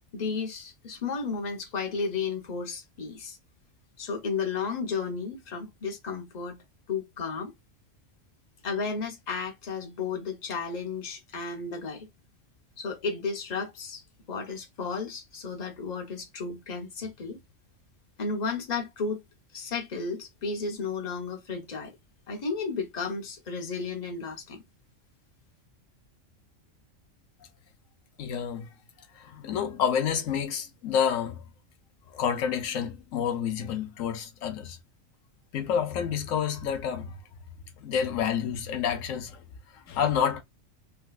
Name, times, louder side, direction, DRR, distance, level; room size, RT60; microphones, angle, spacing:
voice 1, 0.1-3.4 4.0-6.6 6.9-7.5 8.6-12.1 12.8-14.0 14.3-17.4 18.2-19.2 19.5-21.9 22.3-24.6, left 5 dB, 35° left, 0.9 m, -33 dB
voice 2, 28.2-28.7 29.1-31.4 32.1-34.8 35.5-37.2 37.8-39.4 39.7-40.4, left 8 dB, 85° left, 1.1 m, -29 dB
3.9 x 2.3 x 2.4 m
omnidirectional pair, 1.3 m